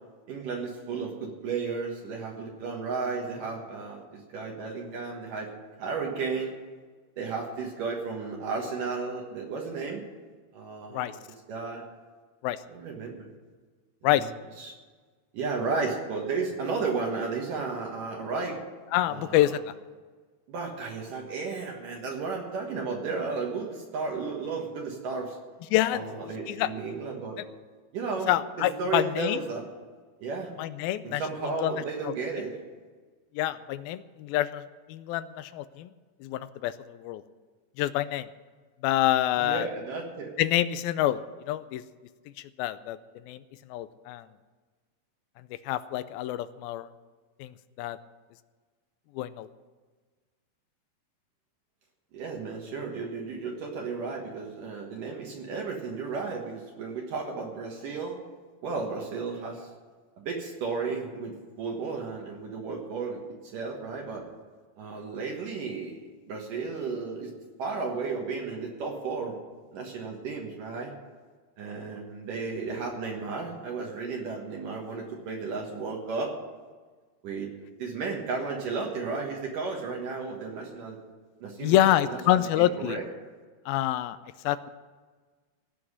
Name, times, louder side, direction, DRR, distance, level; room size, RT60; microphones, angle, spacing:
voice 1, 0.3-5.5 5.8-6.5 7.2-10.0 10.5-11.2 11.5-11.8 12.7-13.3 14.1-14.3 14.6-14.7 15.3-18.6 19.1-19.6 20.5-25.4 25.9-27.4 27.9-28.3 28.6-29.7 30.2-30.5 31.0-32.6 39.4-40.3 52.1-58.2 58.6-59.7 60.2-63.2 63.5-64.2 64.8-67.3 67.6-69.4 69.7-70.9 71.6-76.4 77.2-77.5 77.8-81.0 81.4-83.0, right 4 dB, 65° right, 0 dB, 2.8 m, -33 dB
voice 2, 18.9-19.6 25.7-26.0 26.5-26.7 28.3-29.4 30.6-31.2 31.6-31.7 32.1-32.2 33.4-34.6 34.9-35.9 36.2-37.2 37.8-38.3 38.8-39.7 40.4-41.8 42.6-43.0 43.3-43.4 43.7-44.3 45.7-46.9 47.4-48.0 49.2-49.5 81.6-83.0 83.7-84.2 84.4-84.7, left 13 dB, 80° left, 14 dB, 2.3 m, -26 dB
17.0 x 6.0 x 9.7 m, 1.4 s
omnidirectional pair, 4.4 m